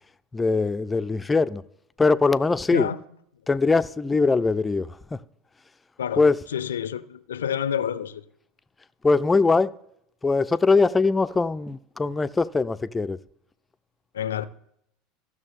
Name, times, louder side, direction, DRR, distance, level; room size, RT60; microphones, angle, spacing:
voice 1, 0.3-1.6 2.0-2.9 3.5-4.9 6.2-6.4 9.0-9.7 10.2-13.2, left 4 dB, 15° left, 0.4 m, -21 dB
voice 2, 2.7-3.0 6.0-8.2 14.1-14.5, left 9 dB, 85° left, 0.4 m, -29 dB
15.0 x 6.2 x 3.7 m
hypercardioid pair, 85°, 0 cm